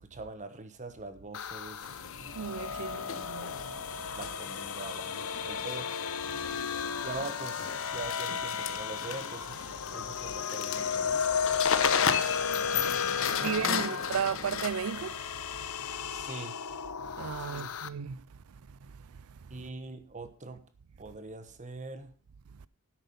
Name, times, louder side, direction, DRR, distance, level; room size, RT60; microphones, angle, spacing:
voice 1, 0.0-1.9 2.7-3.2 4.2-5.9 7.0-11.4 13.4-14.2 16.1-16.6 17.4-17.8 19.5-20.6 21.0-22.1, right 2 dB, 35° right, 1.2 m, -43 dB
sound 1, 1.3-17.9, left 6 dB, 90° left, 0.7 m, -34 dB
sound 2, 1.8-14.7, left 7 dB, 65° left, 1.0 m, -35 dB
voice 2, 2.3-3.5 13.3-15.1 17.2-18.2, right 7 dB, 80° right, 0.4 m, -34 dB
10.5 x 8.0 x 5.5 m
head